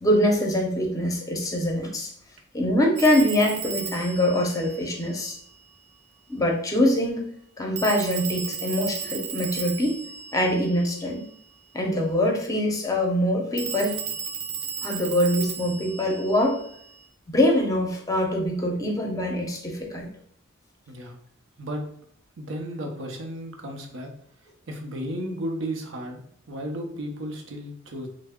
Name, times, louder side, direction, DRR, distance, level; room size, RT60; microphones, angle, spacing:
voice 1, 0.0-2.1 2.5-5.4 6.3-7.3 7.6-10.0 10.3-11.2 11.7-14.0 14.8-16.6 17.3-20.1, left 1 dB, 20° left, 1 dB, 0.6 m, -24 dB
Telephone, 3.0-5.6 7.8-11.4 13.6-17.1, right 7 dB, 35° right, 0.3 m, -35 dB
voice 2, 20.9-21.2 21.6-21.9 22.4-24.1 24.7-26.2 26.5-28.1, equal, 80° right, 3 dB, 0.6 m, -33 dB
3.2 x 2.0 x 3.5 m, 0.65 s
head